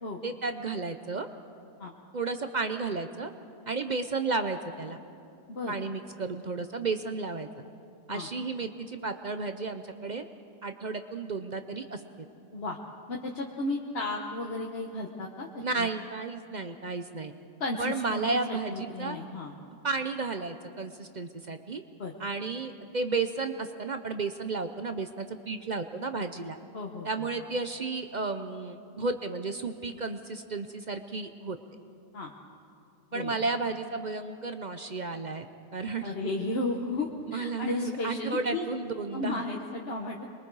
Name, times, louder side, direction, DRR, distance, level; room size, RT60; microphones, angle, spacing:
voice 1, 0.2-1.3 2.1-3.3 3.7-5.0 5.7-7.5 8.1-10.3 10.6-12.0 15.6-17.3 17.8-19.2 19.8-21.8 22.2-26.6 27.0-31.6 33.1-35.5 35.7-36.1 37.3-39.5, right 4 dB, 55° right, 8 dB, 0.4 m, -33 dB
voice 2, 13.1-15.9 17.6-19.5 22.0-22.1 26.7-27.3 32.1-32.3 33.1-33.3 36.0-38.6 39.1-40.2, left 2 dB, 40° left, 0 dB, 1.2 m, -34 dB
26.5 x 22.5 x 4.7 m, 2.6 s
omnidirectional pair, 1.8 m